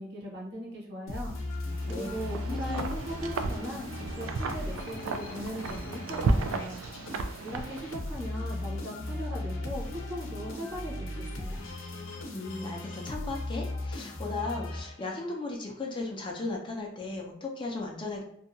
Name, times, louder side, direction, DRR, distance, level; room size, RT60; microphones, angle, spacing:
voice 1, 0.0-1.3 1.9-6.8 7.4-11.7, equal, 55° right, -3 dB, 0.9 m, -39 dB
sound 1, 1.1-15.3, left 2 dB, 75° left, 0.6 m, -37 dB
Wind, 1.7-8.2, right 3 dB, 85° right, 0.3 m, -33 dB
voice 2, 2.5-2.8 3.2-3.3 12.3-18.2, left 3 dB, 25° left, 0 dB, 0.4 m, -36 dB
2.7 x 2.2 x 2.6 m, 0.74 s
head